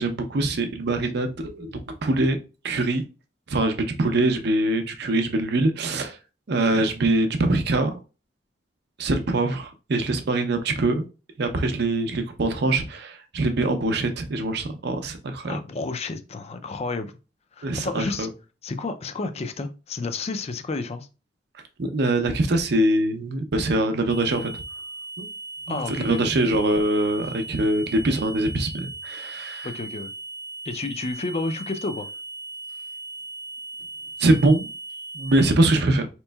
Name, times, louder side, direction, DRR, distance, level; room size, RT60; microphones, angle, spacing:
voice 1, 0.0-2.4 2.6-3.0 3.5-6.2 6.5-7.9 9.0-11.0 11.4-15.6 17.6-18.3 21.8-24.5 25.2-25.3 25.7-29.7 34.2-34.7 35.1-36.1, right 2 dB, 60° right, 7 dB, 0.6 m, -23 dB
voice 2, 15.4-17.1 17.5-18.3 18.6-21.1 25.7-26.2 29.6-30.1 30.7-32.1, left 3 dB, 35° left, 9 dB, 0.4 m, -31 dB
sound 1, 24.1-35.5, right 3 dB, 75° left, 0.7 m, -38 dB
4.2 x 3.0 x 2.3 m, 0.32 s
head